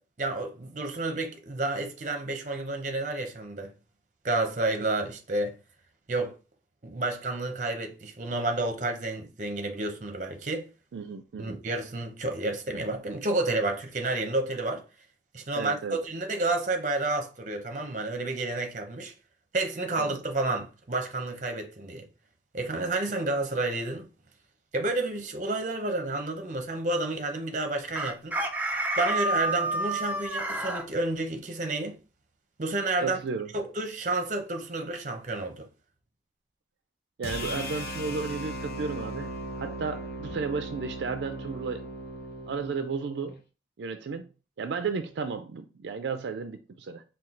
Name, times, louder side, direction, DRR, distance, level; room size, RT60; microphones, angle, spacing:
voice 1, 0.2-3.7 4.2-5.6 6.1-6.3 6.8-10.7 11.4-14.8 15.3-19.1 19.5-22.1 22.5-24.1 24.7-28.4 29.0-32.0 32.6-33.2 33.5-35.7, right 2 dB, 45° right, 0.7 m, -30 dB
voice 2, 10.9-11.6 15.5-16.0 20.0-20.2 33.0-33.5 37.2-41.9 42.5-43.4 43.8-44.3 44.6-47.0, right 5 dB, 75° right, 0.4 m, -33 dB
Chicken rooster, 27.9-30.8, right 2 dB, 10° right, 0.4 m, -29 dB
sound 1, 37.2-43.4, equal, 55° left, 0.8 m, -37 dB
4.3 x 2.3 x 3.7 m
head